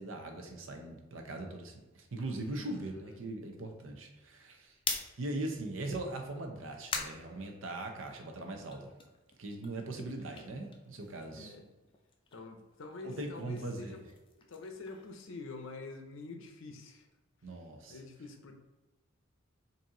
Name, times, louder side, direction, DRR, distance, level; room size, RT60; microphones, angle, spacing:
voice 1, 0.0-4.8 5.2-8.9 9.4-11.5 13.0-14.0 17.4-18.0, right 2 dB, 70° right, 3 dB, 0.7 m, -40 dB
voice 2, 2.5-3.2 10.0-10.1 11.2-11.7 12.3-14.0 14.5-17.1 17.4-17.6 17.9-18.6, left 3 dB, 70° left, 5 dB, 0.6 m, -47 dB
sound 1, 4.6-8.2 8.6-11.5 11.8-15.9, left 5 dB, 25° left, 0.4 m, -44 dB
4.1 x 2.7 x 3.7 m, 1.1 s
head